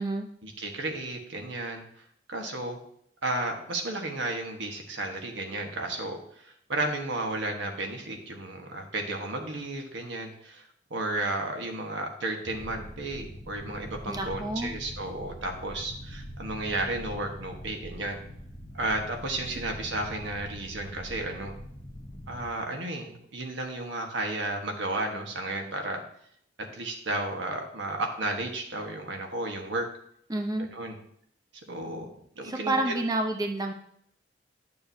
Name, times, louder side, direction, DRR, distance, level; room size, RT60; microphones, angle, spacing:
voice 1, 0.4-1.8 2.3-2.8 3.2-18.2 18.7-21.5 22.3-26.0 26.7-29.9 30.6-31.0 31.7-32.1 32.4-32.9, right 2 dB, 75° right, 3 dB, 1.4 m, -33 dB
sound 1, 12.4-22.5, equal, 20° left, 0.8 m, -43 dB
voice 2, 14.1-14.7 30.3-30.7 32.4-33.7, right 2 dB, 20° right, 3 dB, 0.7 m, -29 dB
11.0 x 6.9 x 2.8 m, 0.68 s
head